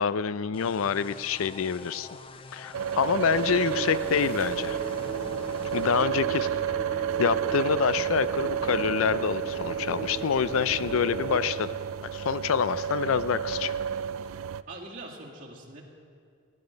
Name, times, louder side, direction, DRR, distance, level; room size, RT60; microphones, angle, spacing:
voice 1, 0.0-2.1 2.5-4.8 5.7-6.5 7.2-11.8 12.1-13.7, left 6 dB, 85° left, 16 dB, 0.4 m, -26 dB
sound 1, 0.5-6.1, left 4 dB, 25° left, 0.5 m, -46 dB
sound 2, 2.7-14.6, right 9 dB, 80° right, 0.3 m, -31 dB
voice 2, 2.9-4.5 5.9-6.6 14.7-15.8, right 2 dB, 40° right, -4 dB, 2.2 m, -44 dB
sound 3, 3.3-11.4, right 2 dB, 10° right, 1.5 m, -39 dB
18.0 x 10.0 x 5.2 m, 2.3 s
head